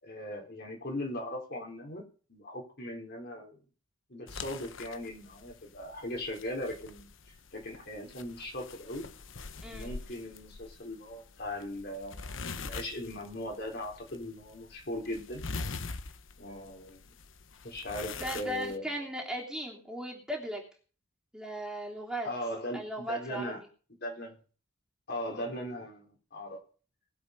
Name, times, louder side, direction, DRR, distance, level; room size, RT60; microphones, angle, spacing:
voice 1, 0.0-3.6 4.1-7.1 7.5-9.1 9.6-15.4 16.4-17.1 17.6-18.9 22.2-23.6 24.0-24.4 25.1-26.6, left 1 dB, 50° left, 1 dB, 4.2 m, -39 dB
sound 1, 4.3-18.8, left 4 dB, 65° left, 1.0 m, -44 dB
voice 2, 9.6-9.9 18.2-20.6 21.3-22.3 22.7-23.4, right 1 dB, 5° right, -2 dB, 3.2 m, -37 dB
20.5 x 7.8 x 5.4 m, 0.39 s
head